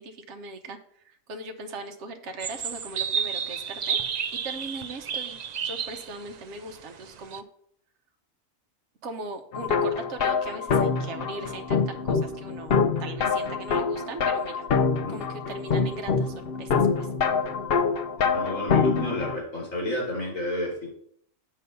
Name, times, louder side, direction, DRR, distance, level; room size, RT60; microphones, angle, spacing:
voice 1, 0.0-4.0 4.3-7.4 9.0-14.6 15.1-17.1, right 2 dB, 60° right, 5 dB, 1.1 m, -39 dB
sound 1, 2.4-7.4, right 7 dB, 85° right, 0.3 m, -31 dB
sound 2, 9.5-19.4, left 5 dB, 55° left, 0.7 m, -25 dB
voice 2, 18.3-20.9, left 1 dB, 70° left, -2 dB, 4.1 m, -31 dB
8.4 x 4.0 x 6.8 m, 0.65 s
omnidirectional pair, 1.4 m